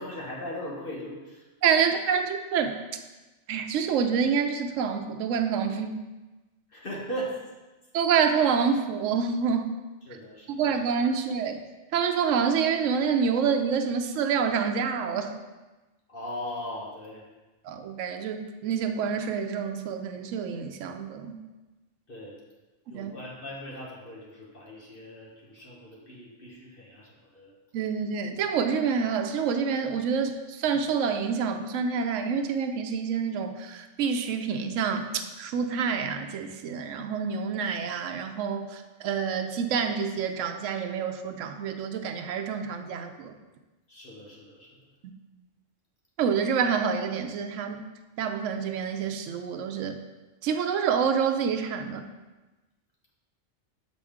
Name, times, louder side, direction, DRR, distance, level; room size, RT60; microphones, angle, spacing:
voice 1, 0.0-1.5 1.8-1.9 6.7-7.4 10.0-10.6 16.1-17.3 22.1-22.4 22.9-27.5 43.9-44.8, equal, 50° left, -3 dB, 1.2 m, -39 dB
voice 2, 1.6-2.7 3.5-6.0 7.9-9.7 10.5-11.6 11.9-15.3 17.6-21.4 22.9-23.1 27.7-43.3 46.2-47.9 48.2-50.0 50.4-52.1, right 6 dB, 80° right, 6 dB, 0.9 m, -27 dB
6.6 x 5.2 x 3.6 m, 1.1 s
omnidirectional pair, 1.3 m